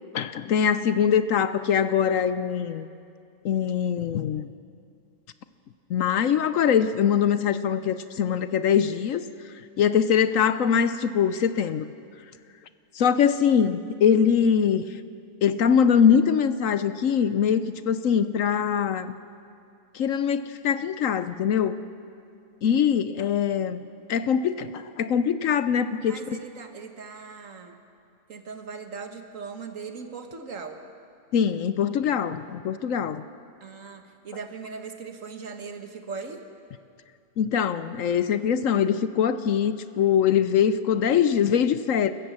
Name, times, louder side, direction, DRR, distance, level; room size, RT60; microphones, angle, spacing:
voice 1, 0.1-2.9 3.4-4.5 5.9-9.2 9.8-11.9 12.9-14.8 15.4-19.1 19.9-21.8 22.6-26.4 31.3-33.2 37.4-42.1, left 8 dB, 65° left, 13 dB, 1.0 m, -23 dB
voice 2, 26.1-27.8 28.3-30.8 33.6-36.4, right 5 dB, 60° right, 6 dB, 1.8 m, -39 dB
28.5 x 15.0 x 7.4 m, 2.4 s
omnidirectional pair, 1.6 m